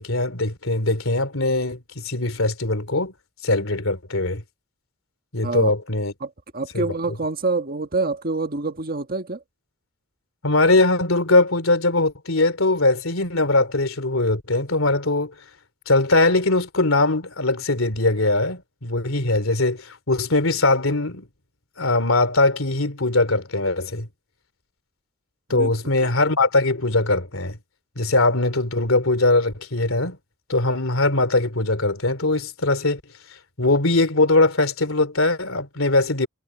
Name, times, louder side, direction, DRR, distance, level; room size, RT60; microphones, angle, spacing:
voice 1, 0.0-3.1 3.4-4.4 5.3-6.1 6.7-6.9 10.4-15.3 15.9-21.2 21.8-24.1 25.5-27.6 28.0-30.2 30.5-33.0 33.6-36.3, left 2 dB, 80° left, 3.1 m, -21 dB
voice 2, 6.2-9.4 25.5-25.7, right 3 dB, 45° right, 1.6 m, -26 dB
head